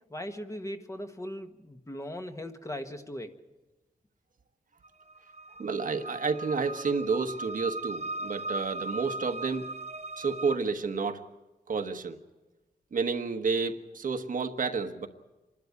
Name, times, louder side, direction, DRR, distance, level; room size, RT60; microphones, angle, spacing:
voice 1, 0.1-3.3, left 1 dB, 20° left, 5 dB, 1.5 m, -39 dB
sound 1, 4.8-10.6, right 2 dB, 45° right, 1.0 m, -38 dB
voice 2, 5.6-9.7 10.2-11.2 11.7-12.2 12.9-15.1, right 4 dB, 60° right, 6 dB, 1.3 m, -30 dB
26.5 x 12.0 x 9.8 m, 1.1 s
wide cardioid pair, 110°, 16 cm